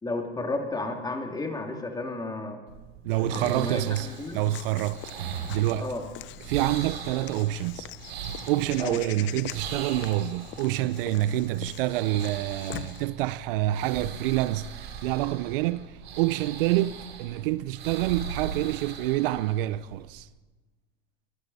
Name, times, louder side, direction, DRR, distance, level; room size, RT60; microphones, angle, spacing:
voice 1, 0.0-2.6 3.2-4.4 5.8-6.0 8.8-9.0, left 2 dB, 15° left, 2.6 m, -32 dB
sound 1, 2.7-20.2, right 6 dB, 85° right, 3.0 m, -40 dB
voice 2, 3.0-5.9 6.5-7.9 8.5-20.3, right 15 dB, 65° right, 0.7 m, -27 dB
Walk footsteps / Bird vocalization bird call bird song, 3.1-13.0, left 14 dB, 40° left, 0.7 m, -43 dB
22.5 x 12.5 x 4.2 m
hypercardioid pair, 110°, 30 cm